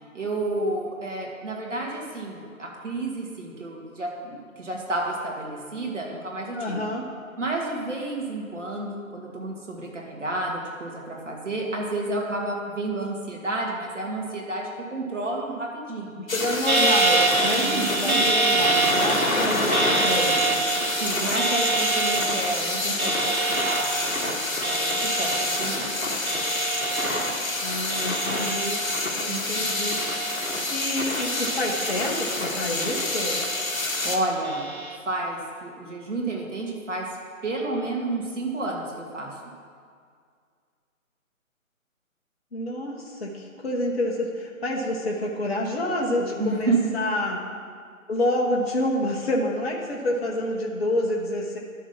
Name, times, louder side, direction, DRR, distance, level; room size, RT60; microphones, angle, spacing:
voice 1, 0.1-6.8 7.4-16.3 17.6-18.6 19.4-19.6 21.0-24.4 24.7-26.0 29.3-29.7 34.0-34.7 35.1-37.1 37.4-39.4 46.4-46.9, right 2 dB, 60° right, -1 dB, 2.4 m, -30 dB
voice 2, 6.5-7.0 16.3-20.6 27.6-28.8 29.1-30.0 30.4-33.4 42.5-47.4 48.1-51.6, left 1 dB, 45° left, -1 dB, 1.4 m, -28 dB
sound 1, 16.3-34.2, left 2 dB, 75° left, 1.6 m, -28 dB
sound 2, 16.7-29.2 29.5-30.7 31.2-32.4 32.8-33.9 34.4-35.0, right 2 dB, 85° right, 1.6 m, -27 dB
11.0 x 6.4 x 5.9 m, 2.1 s
figure-of-eight pair, 145°, 42 cm